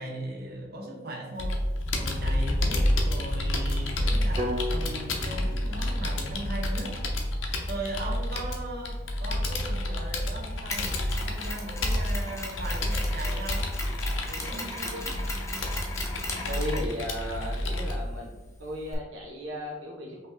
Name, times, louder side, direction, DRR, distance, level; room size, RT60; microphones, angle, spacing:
voice 1, 0.0-1.6 1.9-7.0 7.7-13.7 14.2-15.2, right 1 dB, 50° right, -1 dB, 1.1 m, -38 dB
Computer keyboard, 1.4-17.9, left 1 dB, 80° left, 0.8 m, -29 dB
sound 1, 4.4-8.4, left 1 dB, 25° right, 0.8 m, -38 dB
Mechanisms, 10.7-18.9, left 2 dB, 15° left, 0.6 m, -38 dB
voice 2, 16.4-18.3 18.6-20.3, equal, 75° right, -2 dB, 0.8 m, -35 dB
5.3 x 2.9 x 3.4 m, 1.2 s
head